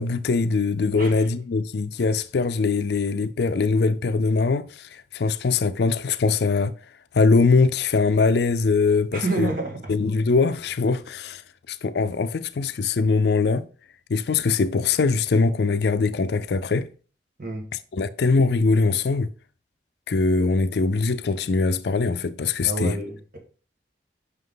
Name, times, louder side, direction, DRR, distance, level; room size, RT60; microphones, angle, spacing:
voice 1, 0.0-6.7 7.1-9.5 9.9-11.4 11.7-13.6 14.1-16.9 17.9-19.3 20.1-23.0, left 4 dB, 60° left, 0.4 m, -22 dB
voice 2, 9.1-9.9 17.4-17.7 22.6-23.4, right 2 dB, 45° right, 1.8 m, -29 dB
5.8 x 5.5 x 3.9 m
head